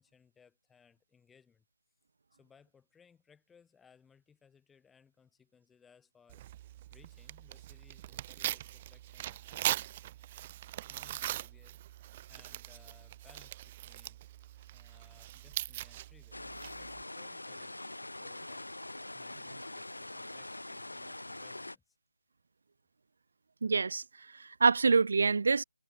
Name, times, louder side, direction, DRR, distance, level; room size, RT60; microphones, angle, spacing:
voice 1, 0.0-1.6 2.3-6.4 6.9-9.9 10.9-14.2 14.7-16.4 16.8-18.7 19.1-22.0, left 6 dB, 5° left, 7.9 m, -64 dB
Tearing, 6.3-17.0, right 14 dB, 20° right, 1.5 m, -41 dB
sound 1, 16.3-21.8, left 2 dB, 85° left, 4.7 m, -44 dB
voice 2, 23.6-24.0 24.3-25.6, right 4 dB, 45° right, 0.3 m, -26 dB
figure-of-eight pair, 165°, 0 cm